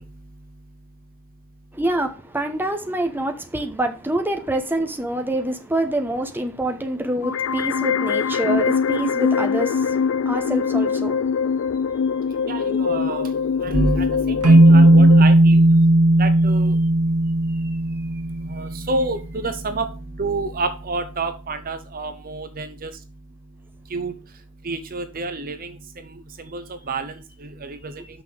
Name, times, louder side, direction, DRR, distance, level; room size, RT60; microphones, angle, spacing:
voice 1, 1.7-11.9 28.0-28.1, right 1 dB, 10° right, 1.0 m, -26 dB
sound 1, 7.2-15.2, left 6 dB, 60° left, 0.3 m, -23 dB
voice 2, 12.5-13.3 13.6-15.8 16.2-16.8 18.5-19.9 20.2-22.9 23.9-24.1 24.6-25.7 26.0-27.9, right 2 dB, 40° right, 0.8 m, -28 dB
sound 2, 14.4-18.7, right 1 dB, 85° right, 1.3 m, -15 dB
6.0 x 5.8 x 6.6 m
head